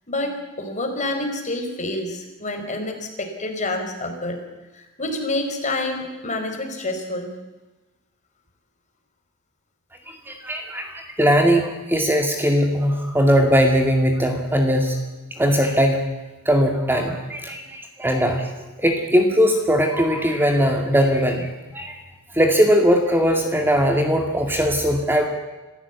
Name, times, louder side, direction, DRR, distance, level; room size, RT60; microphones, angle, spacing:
voice 1, 0.1-4.4 4.7-7.3, left 2 dB, 35° left, 4 dB, 4.7 m, -28 dB
voice 2, 10.3-15.0 15.4-16.0 16.5-18.5 18.8-22.0 22.3-25.3, equal, 10° right, 3 dB, 2.2 m, -19 dB
27.5 x 15.0 x 8.3 m, 1.2 s
head